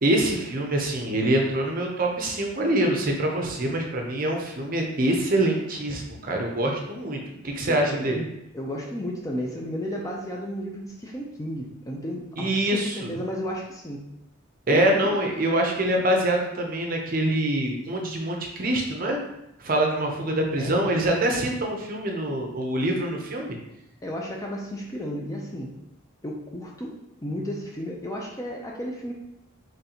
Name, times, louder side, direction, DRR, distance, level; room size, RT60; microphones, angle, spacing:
voice 1, 0.0-8.2 12.4-13.1 14.7-19.2 19.6-23.6, right 1 dB, 40° right, 1 dB, 0.6 m, -25 dB
voice 2, 7.7-8.2 8.5-14.0 14.7-15.2 20.6-20.9 24.0-25.7 26.2-29.1, equal, 15° left, -1 dB, 0.4 m, -33 dB
3.9 x 3.2 x 2.9 m, 0.84 s
head